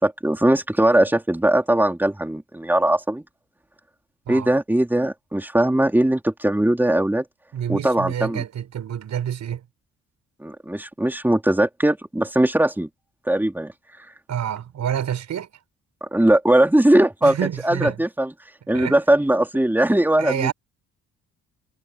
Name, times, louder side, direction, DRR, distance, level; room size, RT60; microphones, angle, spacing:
voice 1, 0.0-3.2 4.3-7.3 7.7-8.4 10.4-12.9 13.3-13.7 16.0-17.4 17.6-18.3 18.7-20.5, right 1 dB, 5° right, 4.0 m, -20 dB
voice 2, 7.5-9.6 14.3-15.5 17.2-18.0 18.7-19.0 20.2-20.5, right 9 dB, 65° right, 6.8 m, -28 dB
cardioid pair, 90°, 30 cm